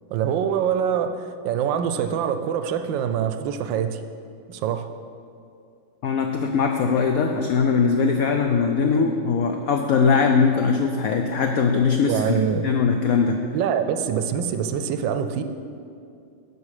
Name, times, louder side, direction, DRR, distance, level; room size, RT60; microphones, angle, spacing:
voice 1, 0.1-4.0 4.5-4.9 12.0-12.6 13.5-15.4, right 8 dB, 80° right, 9 dB, 1.2 m, -24 dB
voice 2, 6.0-13.4, left 5 dB, 85° left, 4 dB, 0.7 m, -21 dB
13.5 x 5.0 x 4.8 m, 2.4 s
omnidirectional pair, 2.1 m